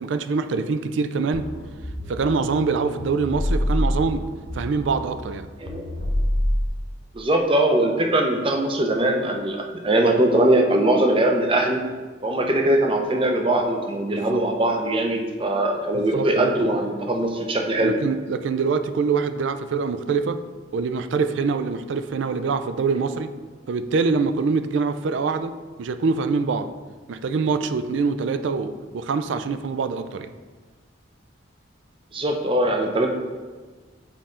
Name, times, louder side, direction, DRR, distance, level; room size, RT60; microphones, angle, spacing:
voice 1, 0.0-1.4 2.1-4.2 4.5-5.5 14.1-14.4 15.9-16.5 17.8-20.4 20.7-23.3 23.7-25.5 25.8-26.7 27.1-30.3, right 4 dB, 70° right, 10 dB, 0.4 m, -24 dB
sound 1, 1.3-6.7, equal, 45° left, 0.8 m, -27 dB
voice 2, 7.1-11.8 12.2-18.0 32.1-33.1, right 1 dB, 25° right, 3 dB, 0.6 m, -21 dB
7.4 x 4.2 x 3.7 m, 1.4 s
head